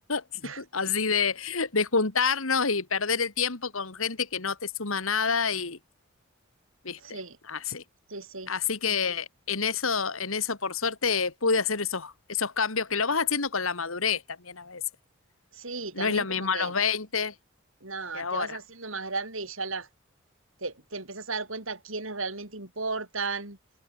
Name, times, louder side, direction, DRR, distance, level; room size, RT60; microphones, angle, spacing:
voice 1, 0.6-5.8 6.8-7.2 7.5-7.8 8.5-14.8 15.9-17.3 18.1-18.6, left 5 dB, 80° left, 2.2 m, -28 dB
voice 2, 7.0-7.4 8.1-8.5 15.5-16.7 17.8-19.9 20.6-23.6, right 3 dB, 75° right, 7.1 m, -35 dB
head